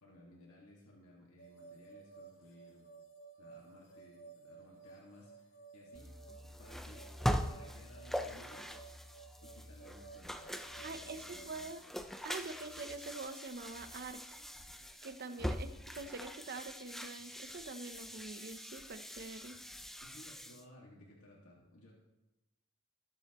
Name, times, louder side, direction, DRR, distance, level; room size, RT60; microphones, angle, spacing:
voice 1, 0.0-2.9 3.4-6.1 6.4-7.1 7.4-8.7 9.4-11.7 15.5-15.7 20.0-21.9, left 1 dB, 75° left, -4 dB, 1.9 m, -59 dB
sound 1, 1.4-11.5, right 5 dB, 60° left, 1.9 m, -56 dB
sound 2, 5.9-20.6, equal, ahead, 0.4 m, -42 dB
voice 2, 10.8-11.8 12.2-14.5 15.0-19.6, right 3 dB, 45° right, 9 dB, 0.7 m, -45 dB
20.0 x 7.4 x 3.0 m, 1.0 s
head